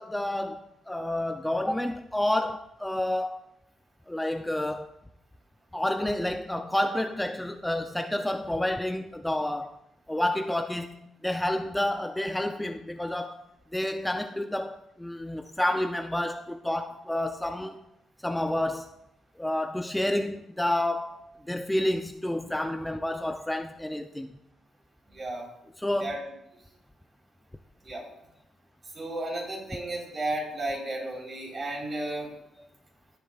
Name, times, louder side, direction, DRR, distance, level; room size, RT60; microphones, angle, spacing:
voice 1, 0.0-3.4 4.1-4.9 5.7-9.7 10.1-11.0 11.2-13.4 13.7-17.8 18.2-18.9 19.4-24.3 25.8-26.2, left 1 dB, 5° left, 0.5 m, -29 dB
voice 2, 25.1-25.5 26.0-26.2 27.8-28.0 28.9-32.3, right 1 dB, 40° right, 3.8 m, -33 dB
16.0 x 7.9 x 2.4 m
cardioid pair, 90°, 0 cm